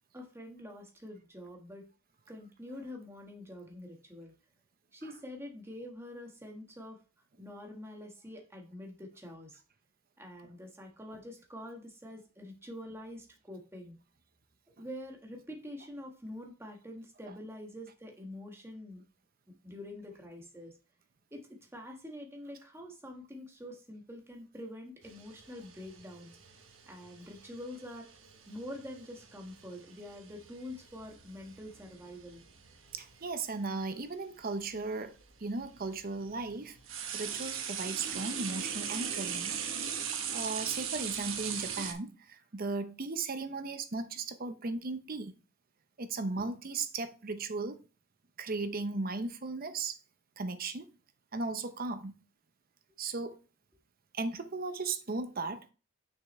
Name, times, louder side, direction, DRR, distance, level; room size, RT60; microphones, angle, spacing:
voice 1, 0.1-1.8 2.3-4.3 4.9-7.0 7.4-9.6 10.2-14.0 14.8-19.0 19.5-20.7 21.3-26.3 26.9-28.0 28.5-32.4, left 1 dB, 10° right, 1.5 m, -46 dB
sound 1, 25.0-33.2 34.3-34.4 35.2-41.9, right 7 dB, 75° right, 1.1 m, -40 dB
voice 2, 32.9-36.8 37.1-39.5 40.3-45.3 46.0-47.8 48.4-50.0 50.4-50.9 51.3-52.1 53.0-53.4 54.1-55.7, right 3 dB, 45° right, 0.7 m, -36 dB
6.5 x 5.9 x 3.2 m
head